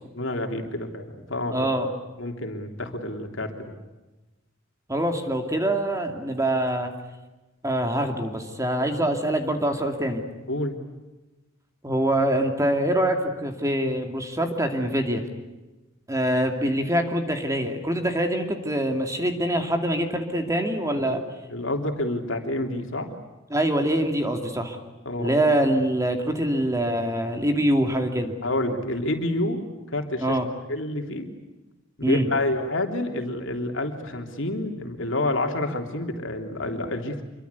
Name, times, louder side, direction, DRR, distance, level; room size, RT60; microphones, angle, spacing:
voice 1, 0.1-1.7 2.2-3.8 10.5-10.7 21.0-21.2 21.5-23.1 25.0-25.4 28.4-29.6 29.9-30.4 30.7-31.3 32.0-37.2, left 1 dB, 65° left, 4 dB, 3.4 m, -28 dB
voice 2, 1.5-1.9 4.9-6.9 7.6-10.2 11.8-15.2 16.1-21.2 23.5-24.8 25.2-28.3 30.2-30.5 32.0-32.3, right 1 dB, 15° right, 5 dB, 2.5 m, -24 dB
27.0 x 23.5 x 8.4 m, 1.1 s
head